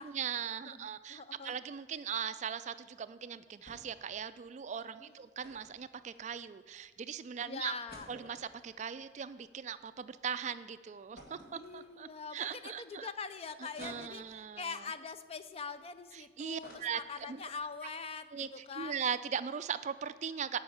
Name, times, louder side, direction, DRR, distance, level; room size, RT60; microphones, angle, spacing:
voice 1, 0.0-7.7 8.1-13.1 13.8-14.8 16.1-17.0 17.3-17.4 18.3-20.6, right 7 dB, 40° right, 13 dB, 0.3 m, -39 dB
voice 2, 0.6-1.6 5.0-5.1 7.4-8.1 11.5-19.0, left 5 dB, 35° left, 12 dB, 0.4 m, -43 dB
sound 1, 3.7-4.1 4.4-4.5 5.4-6.7 7.2-7.3 7.6-10.1 10.5-10.6 11.2-12.3 12.8-12.9 13.8-14.6 15.2-16.1 16.4-17.7 18.1-18.2 18.4-18.7, equal, 55° left, 2.2 m, -56 dB
9.6 x 5.6 x 8.1 m, 1.5 s
head